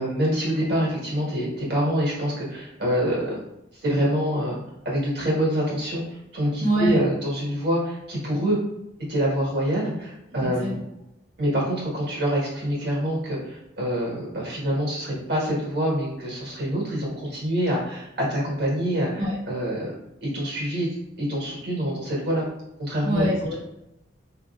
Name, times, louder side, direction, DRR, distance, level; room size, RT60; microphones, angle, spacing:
voice 1, 0.0-3.3 3.8-4.6 4.8-8.6 9.1-10.8 11.4-19.9 20.2-20.9 21.2-22.4 22.8-23.2, equal, 55° right, -4 dB, 1.4 m, -26 dB
voice 2, 6.6-7.0 10.4-10.7 19.2-19.4 23.0-23.5, equal, 85° right, -7 dB, 1.1 m, -24 dB
4.2 x 2.7 x 2.3 m, 0.89 s
head